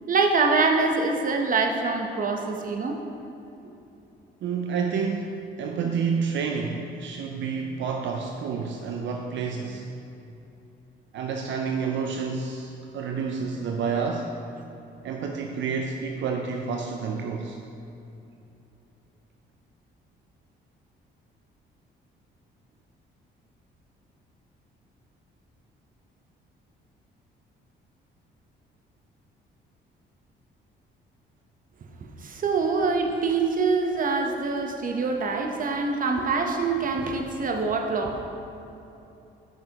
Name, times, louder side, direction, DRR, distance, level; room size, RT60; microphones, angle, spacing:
voice 1, 0.1-3.0 5.8-5.9 32.2-38.3, right 4 dB, 45° right, 3 dB, 0.9 m, -25 dB
voice 2, 4.4-9.9 11.1-14.4 15.0-17.6, right 5 dB, 70° right, 2 dB, 0.5 m, -29 dB
9.1 x 6.0 x 2.9 m, 2.9 s
cardioid pair, 90°, 20 cm